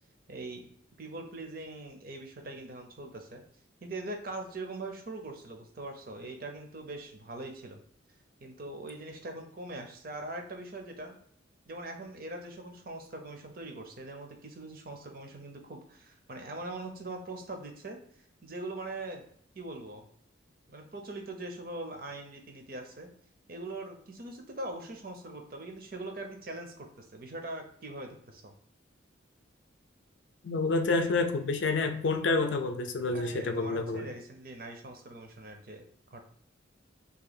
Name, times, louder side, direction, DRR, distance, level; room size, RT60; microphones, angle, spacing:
voice 1, 0.3-0.7 1.0-3.4 3.8-7.8 8.4-11.2 11.7-18.0 18.4-19.2 19.6-20.1 20.7-23.1 23.5-28.5 33.1-35.8 36.1-36.2, right 2 dB, 50° right, 4 dB, 0.7 m, -42 dB
voice 2, 30.4-34.1, left 3 dB, 70° left, 6 dB, 0.5 m, -28 dB
2.9 x 2.8 x 4.0 m, 0.65 s
head